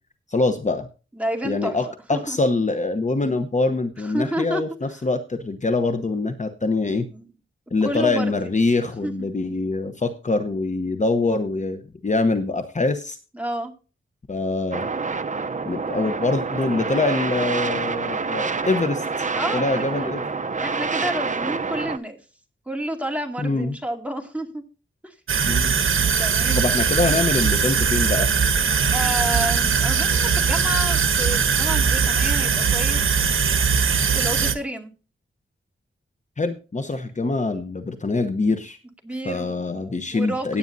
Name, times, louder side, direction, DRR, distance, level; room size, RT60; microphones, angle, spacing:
voice 1, 0.3-0.9 1.4-7.1 7.7-13.2 14.3-14.9 15.6-19.2 19.5-20.2 23.4-23.8 25.5-25.7 26.6-28.3 36.4-38.8 39.2-40.6, left 3 dB, 35° left, 8 dB, 0.9 m, -24 dB
voice 2, 1.2-1.8 2.1-2.4 4.0-4.6 7.1-7.3 7.8-8.3 9.0-9.3 13.3-13.7 19.3-20.1 20.6-22.2 22.7-24.6 25.0-25.1 26.2-26.7 28.9-33.1 34.1-34.9 39.0-40.6, right 1 dB, 5° right, 2 dB, 2.2 m, -30 dB
sound 1, 14.7-22.0, right 4 dB, 35° right, 0.7 m, -27 dB
sound 2, 25.3-34.5, right 6 dB, 80° right, 1.1 m, -20 dB
17.0 x 8.8 x 2.7 m, 0.33 s
wide cardioid pair, 125°, 21 cm